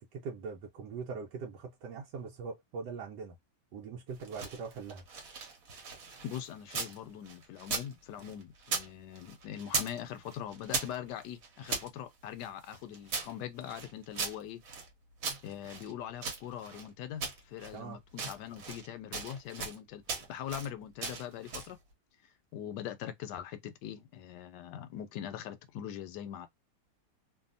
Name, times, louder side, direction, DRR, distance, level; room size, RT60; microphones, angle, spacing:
voice 1, 0.0-3.4 3.7-5.0 17.7-18.0, right 5 dB, 80° right, 1.2 m, -42 dB
sound 1, 4.1-7.0 7.3-8.9 9.1-10.0 10.3-11.9 12.4-14.9 15.2-16.9 17.2-17.8 18.1-18.9 19.1-19.8 20.1-20.7 21.0-21.8, right 4 dB, 60° right, 1.2 m, -38 dB
voice 2, 6.2-14.6 15.4-21.8 22.5-26.5, left 10 dB, 80° left, 1.2 m, -42 dB
2.7 x 2.5 x 2.5 m
omnidirectional pair, 1.9 m